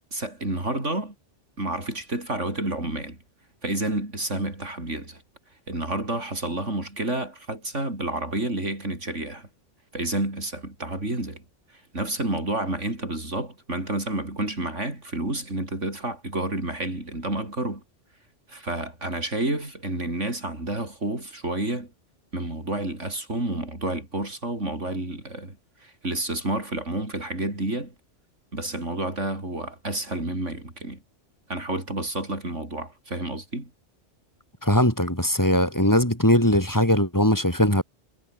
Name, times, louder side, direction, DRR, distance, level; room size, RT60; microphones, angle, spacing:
voice 1, 0.1-1.1 1.6-3.2 3.6-5.2 5.7-9.5 9.9-11.4 11.7-17.8 18.5-21.9 22.3-27.9 28.5-31.0 31.5-33.7, right 2 dB, 90° right, 6.6 m, -30 dB
voice 2, 34.6-37.8, left 1 dB, 15° left, 5.7 m, -20 dB
omnidirectional pair, 1.2 m